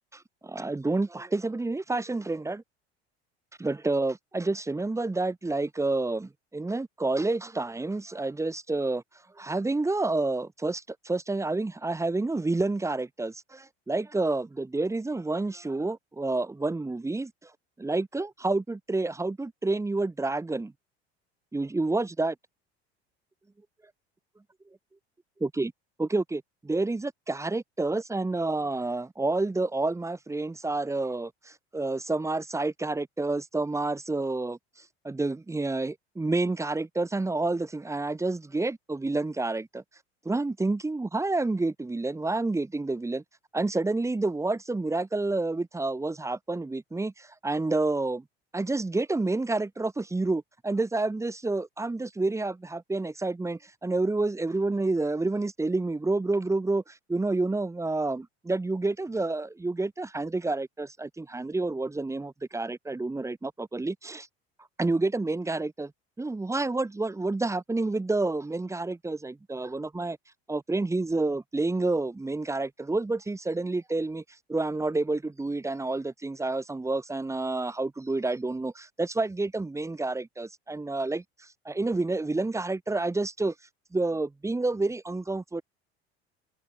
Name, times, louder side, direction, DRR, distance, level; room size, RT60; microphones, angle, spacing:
voice 1, 0.1-2.6 3.6-9.0 9.4-17.5 17.8-20.7 21.5-22.3 25.4-25.7 26.0-34.6 35.0-39.8 40.2-43.2 43.5-48.2 48.5-64.3 64.8-65.9 66.2-70.2 70.5-74.2 74.5-81.2 81.6-83.5 83.9-85.6, right 2 dB, 10° right, 0.8 m, -29 dB
hypercardioid pair, 70°, 32 cm